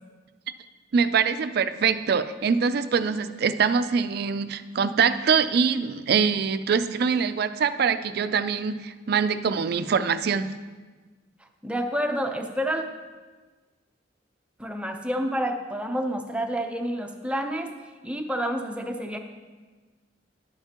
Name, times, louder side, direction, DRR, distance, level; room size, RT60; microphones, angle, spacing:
voice 1, 0.9-10.5, right 6 dB, 55° right, 12 dB, 0.4 m, -24 dB
voice 2, 11.6-12.8 14.6-17.7 18.0-19.2, equal, 5° right, 4 dB, 0.6 m, -29 dB
11.0 x 9.0 x 2.9 m, 1.4 s
head